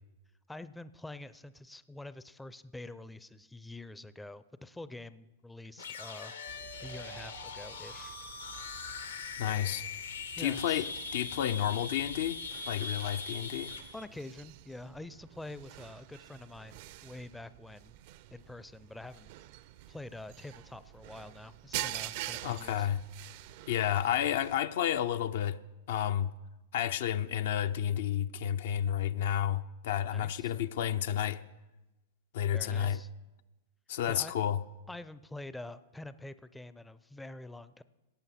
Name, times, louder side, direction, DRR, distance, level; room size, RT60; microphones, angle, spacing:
voice 1, 0.5-6.3 6.8-8.2 10.4-10.9 13.9-18.0 18.3-19.3 19.9-22.9 30.1-30.5 32.5-33.1 34.1-34.3 34.9-37.8, left 2 dB, 5° left, 0.4 m, -46 dB
sound 1, 5.8-14.0, left 4 dB, 80° left, 1.2 m, -41 dB
sound 2, 6.5-24.5, right 15 dB, 55° right, 0.5 m, -47 dB
voice 2, 9.4-9.9 10.4-10.9 11.1-12.4 12.7-13.7 22.4-23.0 23.7-25.6 25.9-26.3 26.7-31.4 32.3-33.0 33.9-34.6, left 10 dB, 60° left, 0.5 m, -31 dB
17.5 x 8.9 x 4.2 m
figure-of-eight pair, 100°, 0 cm